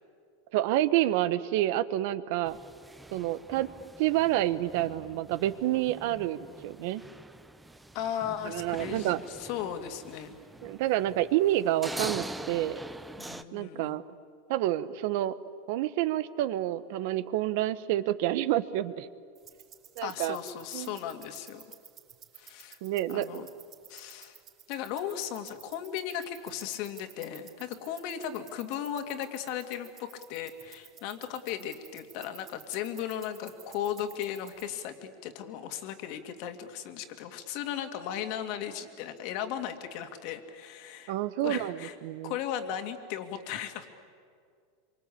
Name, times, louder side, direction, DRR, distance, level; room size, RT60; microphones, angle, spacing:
voice 1, 0.5-2.6 3.1-3.7 4.0-7.0 8.4-9.2 10.6-12.8 13.5-14.0 14.5-15.3 15.7-19.1 20.0-20.4 20.7-21.0 22.8-23.4 41.1-42.3, right 14 dB, 60° right, 14 dB, 1.1 m, -28 dB
sound 1, 2.5-13.4, right 2 dB, 5° right, 0.8 m, -44 dB
voice 2, 7.9-10.4 13.2-14.0 20.0-21.6 22.3-22.8 23.1-23.5 23.9-24.4 24.7-41.1 41.4-42.0 42.2-43.9, left 9 dB, 55° left, 7 dB, 2.4 m, -36 dB
sound 2, 19.4-34.7, right 9 dB, 30° right, 4.4 m, -54 dB
26.5 x 25.0 x 8.6 m, 2.2 s
supercardioid pair, 145°, 0 cm